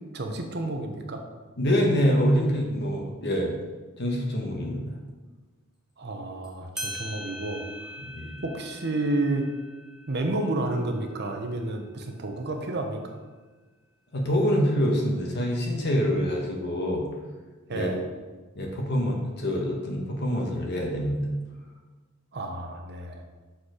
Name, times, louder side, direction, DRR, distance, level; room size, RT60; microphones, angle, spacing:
voice 1, 0.1-1.2 6.0-7.6 8.4-9.4 10.1-13.2 17.7-18.0 22.3-23.2, right 2 dB, 50° right, 4 dB, 0.9 m, -30 dB
voice 2, 1.6-3.5 4.0-4.8 8.0-8.4 14.1-17.1 17.7-17.9 18.5-21.2, equal, 50° left, 0 dB, 1.2 m, -25 dB
sound 1, 6.4-6.5 6.8-11.9, equal, 5° right, 0.9 m, -41 dB
6.5 x 4.4 x 5.0 m, 1.3 s
head